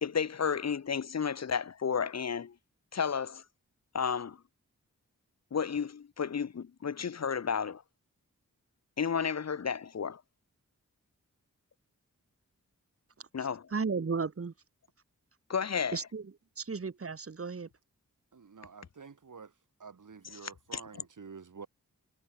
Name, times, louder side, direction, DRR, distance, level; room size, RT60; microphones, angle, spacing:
voice 1, 0.0-2.5 2.9-3.4 3.9-4.4 5.5-7.8 9.0-10.2 13.3-13.7 15.5-16.0 20.4-20.8, left 6 dB, 50° left, 0.8 m, -32 dB
voice 2, 13.7-14.5 15.9-16.2 16.6-17.7, right 5 dB, 40° right, 1.5 m, -34 dB
voice 3, 18.3-19.5 19.8-21.7, right 5 dB, 65° right, 2.8 m, -49 dB
cardioid pair, 45°, 33 cm